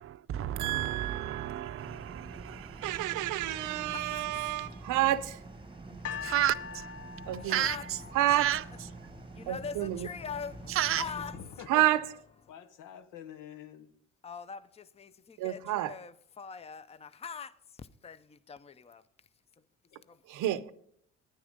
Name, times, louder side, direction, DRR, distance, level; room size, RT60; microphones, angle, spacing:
voice 1, 0.0-3.2 6.2-6.5 7.4-8.0 8.4-8.6 10.7-11.0, right 12 dB, 45° right, 0.5 m, -32 dB
voice 2, 0.6-1.8 2.8-5.4 7.3-7.6 8.1-8.5 9.5-10.1 11.7-12.0 15.4-15.9 20.3-20.7, right 14 dB, 85° right, 0.7 m, -29 dB
sound 1, 1.8-11.4, right 3 dB, 15° right, 1.0 m, -47 dB
voice 3, 3.4-5.0 7.2-8.5 9.1-11.8 14.2-19.3 19.6-19.7 20.1-20.4, left 6 dB, 20° left, 0.6 m, -44 dB
sound 2, 6.0-9.2 10.0-10.1, left 7 dB, 55° left, 0.8 m, -43 dB
voice 4, 11.3-11.8 12.5-13.9 19.9-20.0, left 9 dB, 80° left, 0.9 m, -46 dB
10.5 x 9.8 x 5.2 m
cardioid pair, 90°, 30 cm